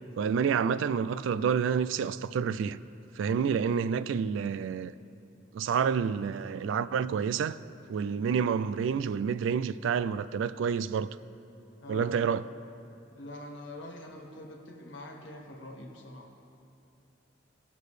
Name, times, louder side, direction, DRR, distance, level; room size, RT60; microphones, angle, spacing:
voice 1, 0.2-2.8 3.2-4.9 5.5-7.6 7.9-11.1 11.9-12.4, right 6 dB, 75° right, 0.3 m, -28 dB
voice 2, 11.8-12.2 13.1-16.3, left 1 dB, 70° left, 1.5 m, -44 dB
19.0 x 6.6 x 3.2 m
head